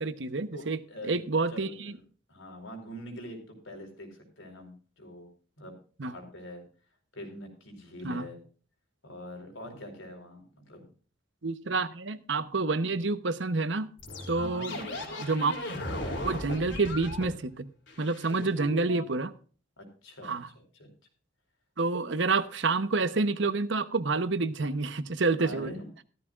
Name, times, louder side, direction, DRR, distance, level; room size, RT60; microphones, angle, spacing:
voice 1, 0.0-0.8 1.1-1.9 6.0-6.1 8.0-8.3 11.4-13.9 14.3-14.8 15.2-15.5 16.2-17.7 18.0-19.3 20.2-20.5 21.8-25.7, right 3 dB, 65° right, 13 dB, 0.9 m, -28 dB
voice 2, 0.5-1.2 1.5-2.0 2.3-5.3 5.6-5.7 6.0-6.6 7.1-8.4 9.0-10.9 14.3-15.1 18.3-19.1 19.8-20.9 25.4-25.9, equal, 85° left, 4 dB, 4.5 m, -44 dB
sound 1, 14.0-17.4 17.9-19.0, left 1 dB, 65° left, 3.3 m, -37 dB
14.5 x 13.5 x 2.4 m, 0.39 s
head